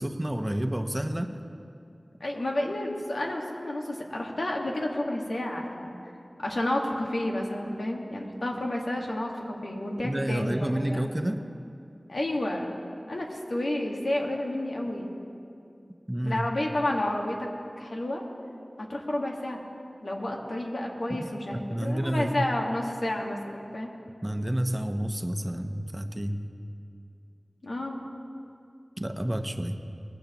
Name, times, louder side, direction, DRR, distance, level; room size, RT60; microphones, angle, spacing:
voice 1, 0.0-1.3 10.0-11.4 16.1-16.5 21.1-21.2 21.5-22.5 24.2-26.4 29.0-29.8, right 1 dB, 20° right, 6 dB, 0.8 m, -29 dB
voice 2, 2.2-6.0 6.4-11.1 12.1-12.7 13.1-15.1 16.2-17.5 17.8-18.2 18.8-19.6 20.0-23.9 27.6-28.0, left 1 dB, 80° left, -1 dB, 1.6 m, -30 dB
20.0 x 15.0 x 3.0 m, 2.6 s
wide cardioid pair, 45°, 0 cm